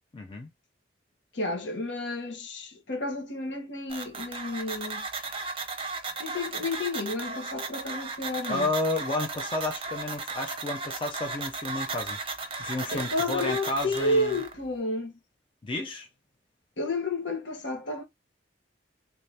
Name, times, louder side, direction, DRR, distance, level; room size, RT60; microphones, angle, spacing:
voice 1, 0.1-0.5 8.5-12.2 12.6-14.4 15.6-16.1, left 2 dB, 30° left, 0.5 m, -31 dB
voice 2, 1.3-5.1 6.2-8.7 12.9-15.1 16.8-18.0, left 2 dB, 75° left, 1.0 m, -31 dB
sound 1, 3.9-14.5, right 3 dB, 30° right, 0.7 m, -36 dB
3.3 x 2.7 x 3.2 m
head